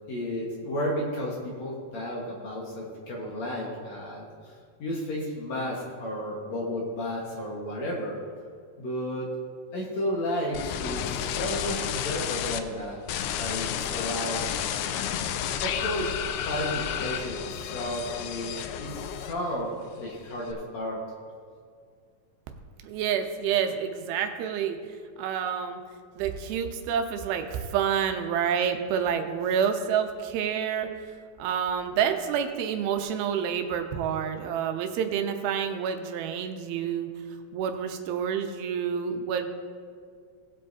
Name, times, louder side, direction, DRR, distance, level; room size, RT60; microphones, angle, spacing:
voice 1, 0.1-8.2 8.8-9.3 9.7-13.0 13.3-14.4 15.6-16.1 16.5-21.0, equal, 60° left, -3 dB, 2.1 m, -33 dB
sound 1, 10.5-12.6 13.1-19.6 19.9-20.5, left 9 dB, 90° left, 2.5 m, -31 dB
voice 2, 22.8-24.8 25.2-25.8 26.2-30.9 31.4-37.1 37.5-39.5, right 8 dB, 90° right, 6 dB, 2.6 m, -28 dB
18.5 x 7.7 x 2.7 m, 2.2 s
omnidirectional pair, 4.4 m